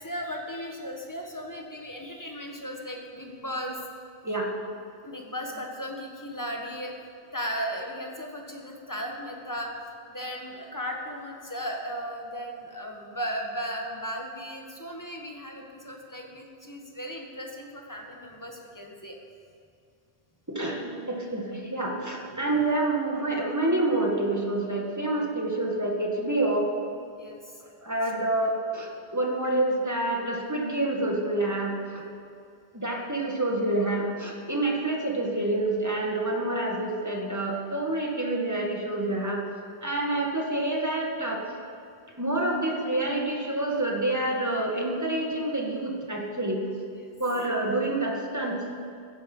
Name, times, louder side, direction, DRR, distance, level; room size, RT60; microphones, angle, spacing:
voice 1, 0.0-3.8 5.0-9.7 10.1-19.2 27.2-27.6 47.0-47.1, equal, 20° left, 1 dB, 1.6 m, -36 dB
voice 2, 20.5-26.7 27.6-32.1 32.7-39.4 39.8-41.4 42.2-46.7 47.2-48.6, right 2 dB, 15° right, -1 dB, 1.8 m, -28 dB
15.0 x 10.0 x 5.6 m, 2.4 s
omnidirectional pair, 1.1 m